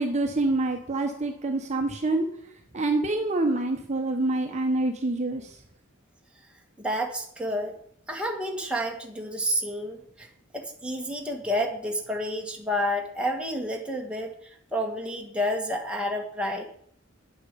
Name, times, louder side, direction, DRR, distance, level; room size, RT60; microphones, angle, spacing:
voice 1, 0.0-2.3 2.7-5.6, right 2 dB, 35° right, 4 dB, 1.1 m, -26 dB
voice 2, 6.8-7.7 8.1-10.3 10.5-14.3 14.7-16.7, equal, 5° right, 0 dB, 1.7 m, -29 dB
9.6 x 8.2 x 6.9 m, 0.63 s
head